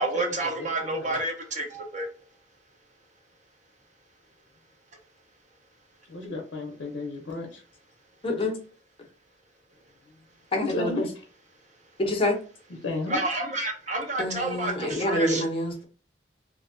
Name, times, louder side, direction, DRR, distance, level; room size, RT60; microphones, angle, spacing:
voice 1, 0.0-2.1 13.1-15.4, right 2 dB, 40° right, 0.6 m, -29 dB
voice 2, 0.6-1.2 6.1-7.6 10.6-11.1 12.8-13.2, left 2 dB, 75° left, 0.5 m, -33 dB
voice 3, 8.2-8.6 10.5-11.1 12.0-12.4 14.2-15.8, left 1 dB, 30° left, 0.6 m, -27 dB
2.5 x 2.1 x 2.4 m
head